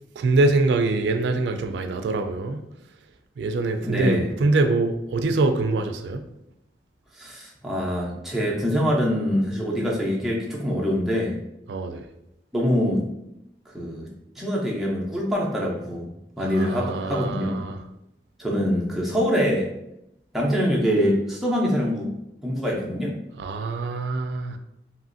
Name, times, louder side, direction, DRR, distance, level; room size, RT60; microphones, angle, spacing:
voice 1, 0.2-2.6 3.4-6.2 11.7-12.1 16.5-17.8 23.4-24.6, right 3 dB, 80° right, 7 dB, 0.3 m, -24 dB
voice 2, 3.8-4.3 7.2-11.4 12.5-13.0 13.7-14.1 14.4-16.1 16.4-17.7 18.4-19.7 20.3-22.1 22.4-23.2, equal, ahead, -4 dB, 0.5 m, -24 dB
2.9 x 2.4 x 2.5 m, 0.84 s
head